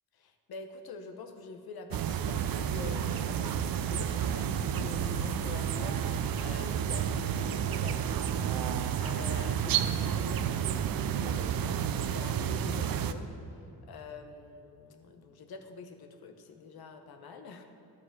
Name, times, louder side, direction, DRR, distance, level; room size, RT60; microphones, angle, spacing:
voice 1, 0.1-17.6, left 4 dB, 75° left, 7 dB, 0.9 m, -46 dB
sound 1, 1.9-13.1, right 9 dB, 65° right, 0.5 m, -31 dB
sound 2, 2.2-9.9, equal, 20° left, 1.3 m, -52 dB
10.5 x 4.8 x 7.3 m, 2.8 s
cardioid pair, 80°, 37 cm